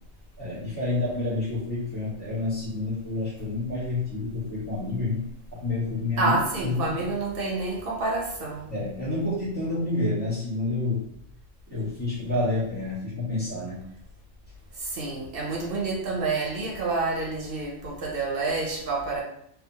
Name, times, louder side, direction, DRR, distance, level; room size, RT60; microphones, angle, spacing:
voice 1, 0.4-7.0 8.7-11.1 11.7-13.8, left 2 dB, 10° left, -9 dB, 1.1 m, -29 dB
voice 2, 6.2-8.7 14.8-19.2, right 3 dB, 60° right, -2 dB, 0.7 m, -28 dB
2.8 x 2.2 x 2.7 m, 0.73 s
omnidirectional pair, 1.3 m